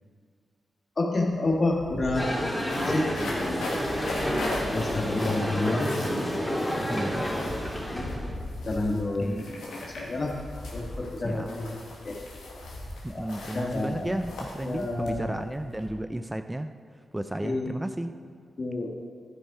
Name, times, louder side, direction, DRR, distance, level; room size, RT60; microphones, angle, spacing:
voice 1, 1.0-2.3 2.7-3.1 3.5-3.6 4.7-5.9 7.9-8.1 8.6-9.3 9.8-10.3 10.7-11.8 12.0-12.1 13.1-14.2 14.6-15.4 17.4-17.7 18.6-18.9, left 2 dB, 50° left, -1 dB, 1.6 m, -29 dB
sound 1, 1.1-1.2 1.4-15.9, left 2 dB, 90° left, 1.4 m, -38 dB
sound 2, 2.1-8.3, equal, 10° left, 2.6 m, -30 dB
voice 2, 6.9-7.3 9.2-9.4 11.2-11.6 13.0-16.8 17.1-18.1, right 1 dB, 15° right, 9 dB, 0.4 m, -33 dB
11.0 x 5.4 x 4.8 m, 2.1 s
supercardioid pair, 45°, 0 cm